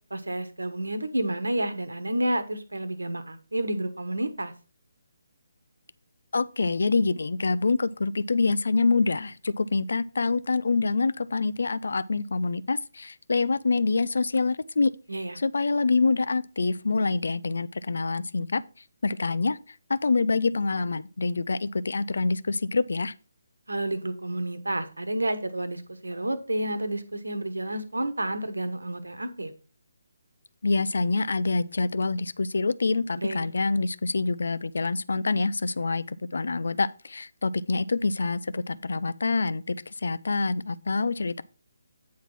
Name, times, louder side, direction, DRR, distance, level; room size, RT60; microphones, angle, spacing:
voice 1, 0.1-4.5 15.1-15.4 23.7-29.5 33.2-33.4, right 1 dB, 75° right, 1.2 m, -30 dB
voice 2, 6.3-14.9 15.4-18.6 19.0-19.6 19.9-23.1 30.6-41.4, left 3 dB, 60° left, 0.4 m, -26 dB
9.4 x 4.0 x 5.8 m
figure-of-eight pair, 145°, 0 cm